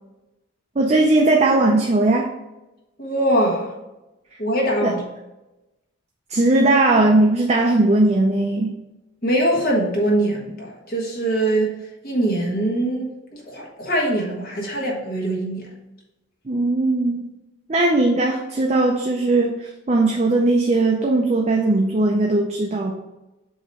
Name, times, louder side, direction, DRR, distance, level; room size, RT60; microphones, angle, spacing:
voice 1, 0.8-2.3 4.8-4.9 6.3-8.7 16.5-17.3 17.7-22.9, right 2 dB, 30° right, 1 dB, 0.5 m, -18 dB
voice 2, 3.0-3.7 4.4-5.0 9.2-11.7 12.0-15.7, right 1 dB, 45° left, -3 dB, 1.4 m, -22 dB
7.3 x 3.0 x 4.3 m, 1.0 s
head